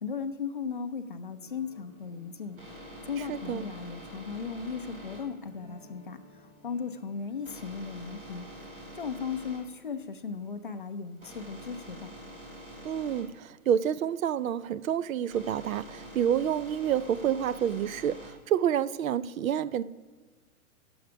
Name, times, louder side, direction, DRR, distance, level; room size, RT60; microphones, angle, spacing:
voice 1, 0.0-2.6 3.0-8.5 8.9-12.2, left 6 dB, 40° left, 8 dB, 0.4 m, -37 dB
sound 1, 1.4-9.0, left 1 dB, 20° right, 1.8 m, -56 dB
sound 2, 1.9-18.5, equal, 35° right, 2.7 m, -47 dB
voice 2, 3.3-3.6 12.8-19.8, right 9 dB, 65° right, 18 dB, 0.5 m, -28 dB
9.3 x 7.8 x 5.0 m, 1.4 s
hypercardioid pair, 175°, 44 cm